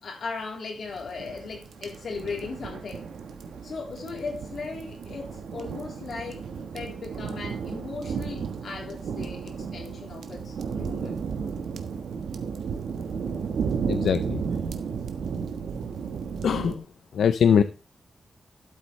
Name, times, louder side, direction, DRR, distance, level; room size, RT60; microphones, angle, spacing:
voice 1, 0.0-3.1 3.6-6.5 6.7-11.2, left 4 dB, 65° left, 3.5 m, -37 dB
sound 1, 0.9-16.8, right 6 dB, 85° right, 1.3 m, -33 dB
voice 2, 13.9-14.4 16.4-16.9 17.1-17.6, left 7 dB, 85° left, 0.5 m, -22 dB
12.5 x 8.4 x 3.2 m
wide cardioid pair, 145°, 0 cm